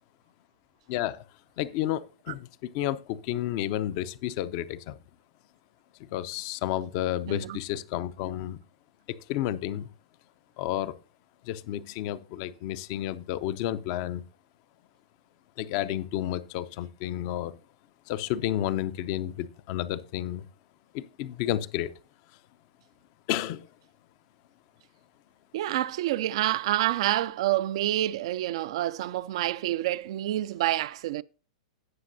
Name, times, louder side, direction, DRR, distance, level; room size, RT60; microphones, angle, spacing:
voice 1, 0.9-1.2 1.6-4.9 6.0-8.6 9.1-9.9 10.6-11.0 11.4-14.2 15.6-17.6 18.1-20.5 20.9-21.9 23.3-23.7, left 12 dB, 50° left, 0.5 m, -31 dB
voice 2, 7.3-7.6 25.5-31.2, right 14 dB, 65° right, 0.4 m, -28 dB
17.5 x 5.9 x 2.6 m
hypercardioid pair, 120°, 3 cm